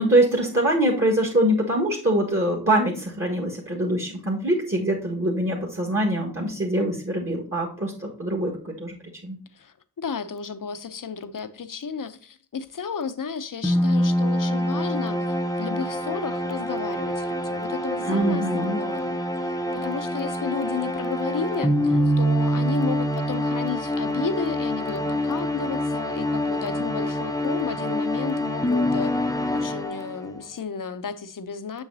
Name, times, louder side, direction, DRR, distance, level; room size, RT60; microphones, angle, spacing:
voice 1, 0.0-8.9 9.2-9.4 18.0-18.8, right 1 dB, 35° right, 1.7 m, -23 dB
voice 2, 9.5-29.1 29.5-31.8, left 6 dB, 55° left, 0.8 m, -33 dB
sound 1, 13.6-30.4, equal, 10° left, 0.7 m, -25 dB
7.1 x 6.4 x 2.7 m
cardioid pair, 55°, 38 cm